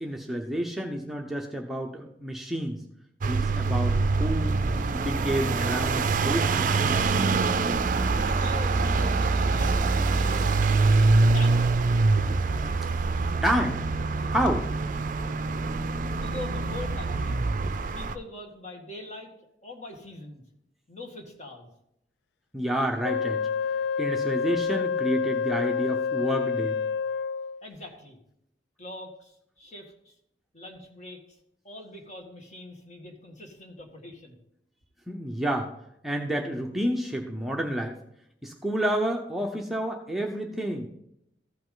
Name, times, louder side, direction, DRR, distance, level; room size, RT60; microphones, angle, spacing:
voice 1, 0.0-2.8 3.3-4.5 4.9-7.1 13.4-13.8 14.3-14.7 22.5-23.5 24.0-26.8 35.1-35.7 36.0-37.9 38.4-40.9, equal, ahead, 1 dB, 0.7 m, -29 dB
sound 1, 3.2-18.1, right 3 dB, 50° right, 0.5 m, -24 dB
voice 2, 8.2-10.6 11.0-12.0 16.1-17.4 17.9-19.3 19.6-20.4 20.9-21.7 27.6-28.2 28.8-30.2 30.5-31.4 31.6-34.4, left 2 dB, 45° left, 1 dB, 1.9 m, -43 dB
Wind instrument woodwind instrument, 23.0-27.6, left 6 dB, 70° left, 0.3 m, -28 dB
14.5 x 5.6 x 3.8 m, 0.77 s
head